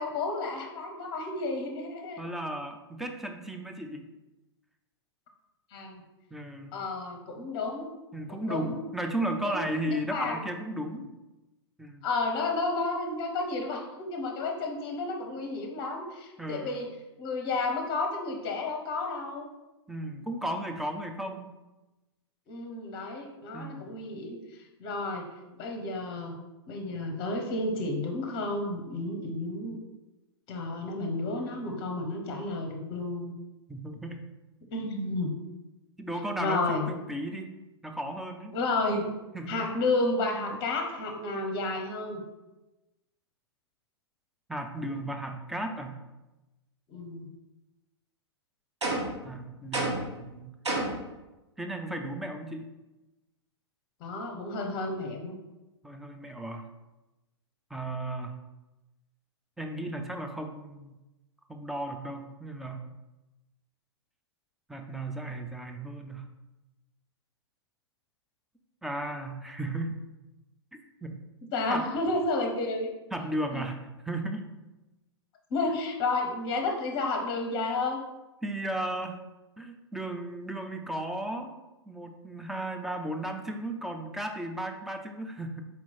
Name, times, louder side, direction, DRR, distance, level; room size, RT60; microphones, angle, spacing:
voice 1, 0.0-2.2 5.7-6.0 6.7-7.9 8.3-8.8 9.4-10.4 12.0-16.9 17.2-19.5 22.5-24.4 24.8-25.3 25.6-26.4 26.7-29.8 30.5-33.4 34.7-35.4 36.4-36.8 38.5-39.1 39.5-42.2 46.9-47.3 54.0-55.4 71.5-72.9 73.5-73.6 75.5-78.0, left 2 dB, 30° left, 3 dB, 0.7 m, -31 dB
voice 2, 2.2-4.1 6.3-6.7 8.1-11.1 11.8-12.1 16.4-16.8 19.9-21.5 23.5-24.0 33.7-34.2 36.0-37.5 37.8-38.5 39.3-39.7 44.5-46.0 49.2-50.5 51.6-52.6 55.8-56.6 57.7-58.4 59.6-61.0 61.5-62.8 64.7-66.3 68.8-70.0 70.7-71.2 71.7-71.9 73.1-74.4 78.4-79.2 79.6-81.5 81.9-85.6, right 1 dB, ahead, 3 dB, 0.3 m, -35 dB
sound 1, 48.8-49.2 49.7-50.2 50.6-51.1, right 2 dB, 75° right, 1.1 m, -30 dB
4.2 x 3.0 x 4.0 m, 1.0 s
figure-of-eight pair, 105°, 15 cm